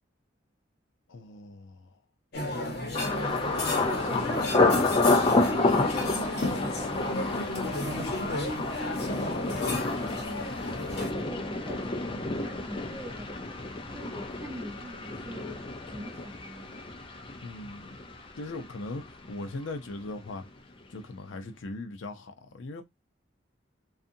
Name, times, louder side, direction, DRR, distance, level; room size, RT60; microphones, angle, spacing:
voice 1, 1.1-2.0 3.6-5.0 17.4-18.0 18.4-20.5 20.9-22.8, left 2 dB, 85° left, 0.5 m, -40 dB
sound 1, 2.3-11.1, left 2 dB, 60° left, 0.9 m, -33 dB
Thunder, 2.9-18.7 19.0-19.6 20.0-20.3, left 2 dB, 30° left, 0.5 m, -29 dB
voice 2, 3.0-7.2 7.6-9.3 9.6-10.5 11.1-13.5 13.9-16.7, equal, 15° right, 0.7 m, -41 dB
2.6 x 2.4 x 2.6 m
head